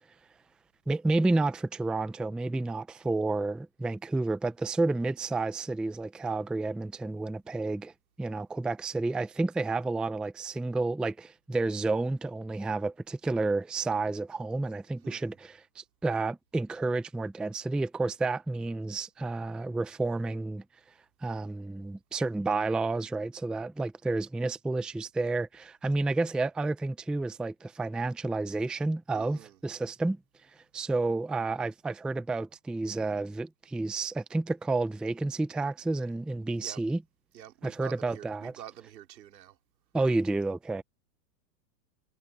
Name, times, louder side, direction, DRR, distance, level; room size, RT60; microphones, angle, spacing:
voice 1, 0.9-7.9 8.2-20.6 21.2-30.2 30.7-37.0 37.6-38.6 39.9-40.8, right 3 dB, ahead, 0.5 m, -30 dB
voice 2, 15.0-15.3 29.2-29.6 36.6-36.8 37.3-39.6, right 12 dB, 85° right, 4.1 m, -47 dB
hypercardioid pair, 125°, 49 cm